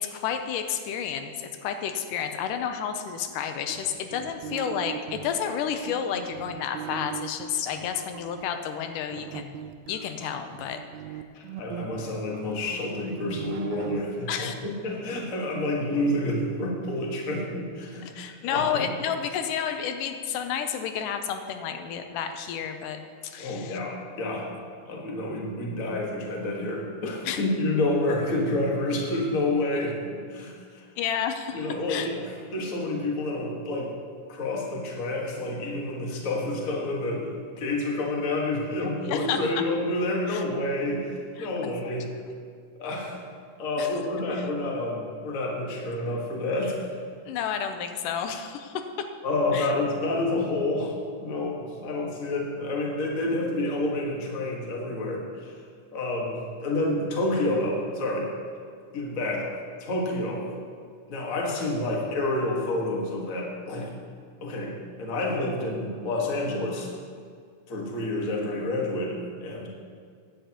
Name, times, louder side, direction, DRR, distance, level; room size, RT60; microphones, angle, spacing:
voice 1, 0.0-9.6 9.9-10.8 11.1-11.2 14.3-14.5 18.0-23.8 27.3-27.4 31.0-32.1 39.0-39.5 40.3-40.4 41.4-41.9 43.8-43.9 44.3-44.5 47.3-49.1 49.5-49.7, left 8 dB, 90° left, 7 dB, 2.3 m, -31 dB
sound 1, 3.7-8.4 9.1-14.0, right 10 dB, 90° right, 1.6 m, -39 dB
voice 2, 11.3-18.9 23.4-24.5 24.8-30.9 31.5-32.2 32.5-33.9 34.3-42.1 42.8-43.2 43.6-46.8 49.2-50.9 51.2-55.5 55.9-58.3 58.9-59.5 59.8-60.5 61.1-64.0 64.4-66.9 67.7-69.7, left 2 dB, 40° left, -1 dB, 1.3 m, -29 dB
15.5 x 10.5 x 3.0 m, 2.1 s
omnidirectional pair, 3.7 m